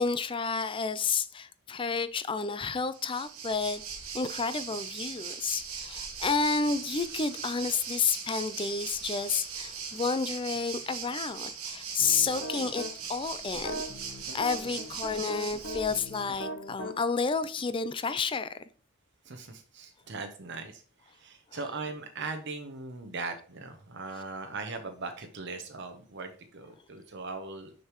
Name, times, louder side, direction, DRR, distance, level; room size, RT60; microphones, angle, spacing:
voice 1, 0.0-3.8 4.1-12.8 13.1-13.8 14.3-18.5, left 5 dB, 25° left, 0.4 m, -30 dB
Waves surf, 2.9-16.2, right 6 dB, 85° right, 1.4 m, -39 dB
sound 1, 12.0-12.9 13.5-16.9, equal, 55° left, 1.1 m, -39 dB
voice 2, 19.3-20.8 21.1-27.7, right 3 dB, 55° right, 0.9 m, -39 dB
6.6 x 6.5 x 3.0 m
head